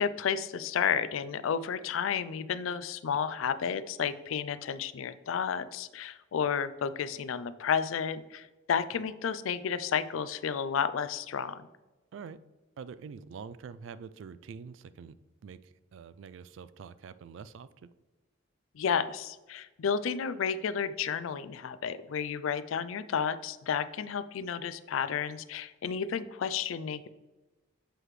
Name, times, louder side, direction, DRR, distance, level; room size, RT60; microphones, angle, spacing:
voice 1, 0.0-11.6 18.7-27.1, left 7 dB, 80° left, 13 dB, 0.4 m, -32 dB
voice 2, 12.8-15.1 15.4-17.9, right 6 dB, 65° right, 15 dB, 0.3 m, -45 dB
7.7 x 4.9 x 3.1 m, 1.1 s
head